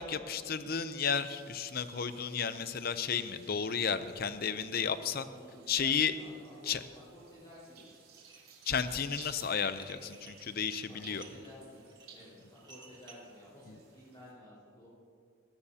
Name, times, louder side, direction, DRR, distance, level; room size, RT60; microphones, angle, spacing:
voice 1, 0.0-5.2 5.7-6.1 6.7-6.8 8.7-11.2 13.7-13.8, left 6 dB, 45° left, 11 dB, 0.6 m, -33 dB
sound 1, 1.1-14.3, right 6 dB, 80° right, 3.6 m, -58 dB
voice 2, 5.0-7.9 10.8-14.9, left 1 dB, 25° left, -11 dB, 4.5 m, -53 dB
Dishes pots and pans, 8.2-8.8 9.1-13.3, right 4 dB, 20° right, 1.4 m, -56 dB
19.5 x 16.5 x 2.8 m, 2.3 s
head